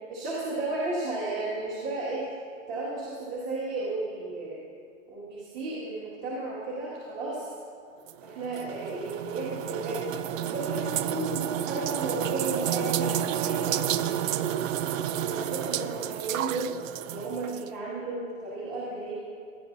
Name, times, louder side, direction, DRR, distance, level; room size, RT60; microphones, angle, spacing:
voice 1, 0.1-2.3 2.7-4.6 5.1-7.5 8.2-10.1 10.4-14.6 15.2-16.7 17.1-19.1, right 2 dB, 30° right, -8 dB, 2.1 m, -34 dB
sound 1, 8.1-17.7, right 11 dB, 75° right, 0.5 m, -30 dB
17.5 x 11.0 x 2.7 m, 2.3 s
hypercardioid pair, 140°, 40 cm